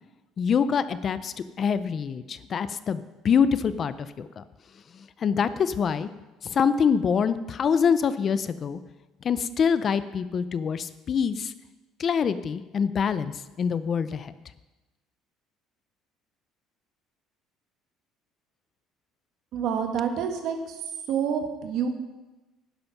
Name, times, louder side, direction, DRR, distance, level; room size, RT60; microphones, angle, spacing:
voice 1, 0.4-4.4 5.2-6.1 6.4-8.8 9.2-11.5 12.0-13.3 13.6-14.3, left 6 dB, 30° left, 14 dB, 0.5 m, -25 dB
voice 2, 19.5-21.9, right 7 dB, 60° right, 5 dB, 1.8 m, -28 dB
11.5 x 11.0 x 5.9 m, 1.1 s
cardioid pair, 155°, 0 cm